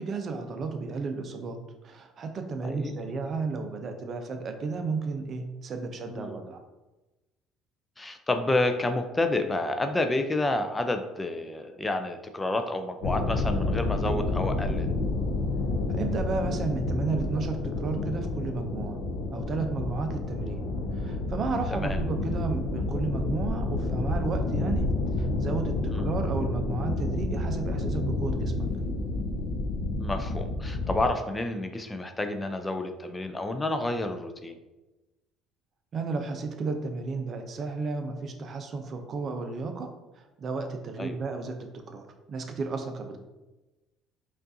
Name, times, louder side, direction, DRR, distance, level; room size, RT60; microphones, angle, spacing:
voice 1, 0.0-1.6 1.8-6.6 15.9-19.0 19.3-20.6 20.9-24.9 25.2-28.7 35.9-39.9 40.1-43.2, right 4 dB, 45° right, 5 dB, 0.5 m, -33 dB
voice 2, 8.0-14.9 21.7-22.0 25.9-26.1 30.0-34.6 41.0-41.2, left 2 dB, 15° left, 7 dB, 0.3 m, -29 dB
sound 1, 13.0-31.1, left 2 dB, 90° left, 0.5 m, -29 dB
5.2 x 2.5 x 2.6 m, 1.1 s
cardioid pair, 100°, 0 cm